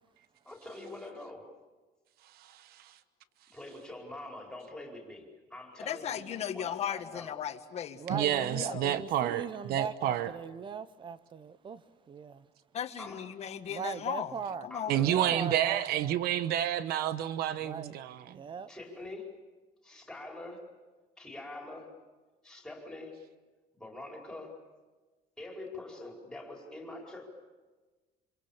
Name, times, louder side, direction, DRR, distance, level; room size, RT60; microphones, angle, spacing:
voice 1, 0.4-1.5 3.5-7.3 13.0-13.2 14.7-15.3 18.7-19.3 19.8-20.6 21.2-21.9 22.4-23.1 23.8-24.5 25.4-27.3, left 2 dB, 5° left, 4.8 m, -44 dB
voice 2, 2.4-2.9 8.1-10.3 14.9-18.4, right 11 dB, 65° right, 1.1 m, -30 dB
voice 3, 5.8-8.8 12.7-14.3 14.6-15.0, left 9 dB, 40° left, 1.7 m, -37 dB
voice 4, 8.0-12.4 13.7-14.7 15.0-16.2 17.6-17.9 18.3-18.7, right 6 dB, 30° right, 0.8 m, -39 dB
28.0 x 26.5 x 7.2 m
cardioid pair, 165°, 17 cm